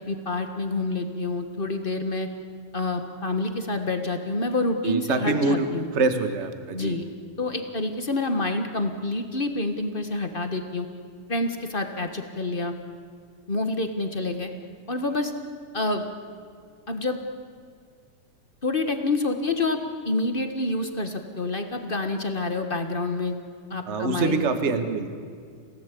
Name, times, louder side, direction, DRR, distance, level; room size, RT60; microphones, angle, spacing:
voice 1, 0.0-2.3 2.7-5.9 6.7-7.0 7.4-10.9 11.3-12.7 13.5-14.5 14.9-15.3 15.7-16.0 16.9-17.2 18.6-19.8 20.0-23.3 23.7-24.4, left 2 dB, 40° left, 6 dB, 0.7 m, -27 dB
voice 2, 4.8-5.7 5.9-7.0 23.9-25.2, right 3 dB, 30° right, 8 dB, 1.3 m, -25 dB
29.5 x 18.0 x 8.5 m, 2.1 s
omnidirectional pair, 3.4 m